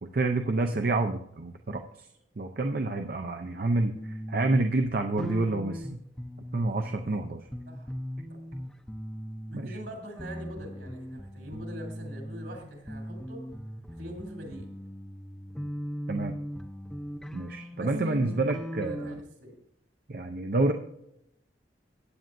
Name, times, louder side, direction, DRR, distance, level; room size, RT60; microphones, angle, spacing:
voice 1, 0.0-2.1 2.4-6.0 6.5-7.5 9.5-9.8 16.1-16.4 17.3-19.1 20.1-20.7, right 2 dB, 50° right, 5 dB, 0.6 m, -28 dB
sound 1, 3.9-7.2 7.5-9.9 10.2-12.6 12.9-19.2, equal, 5° left, 0.6 m, -39 dB
voice 2, 9.5-13.4 13.9-14.7 17.7-19.5, equal, 70° right, 2 dB, 3.1 m, -44 dB
15.0 x 9.2 x 2.6 m, 0.80 s
head